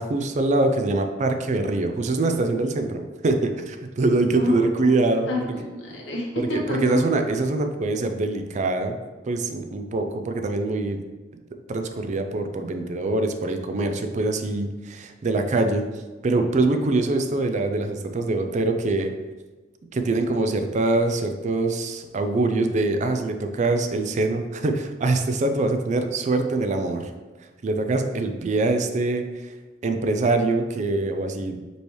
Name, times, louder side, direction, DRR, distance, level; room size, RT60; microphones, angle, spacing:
voice 1, 0.0-5.3 6.4-9.0 9.2-11.0 11.7-15.9 16.2-19.1 19.9-27.1 27.6-29.3 29.8-31.6, right 2 dB, 40° right, 6 dB, 0.4 m, -24 dB
voice 2, 4.3-5.0 5.3-7.0, left 2 dB, 80° left, -2 dB, 1.1 m, -29 dB
5.2 x 3.2 x 3.1 m, 1.3 s
head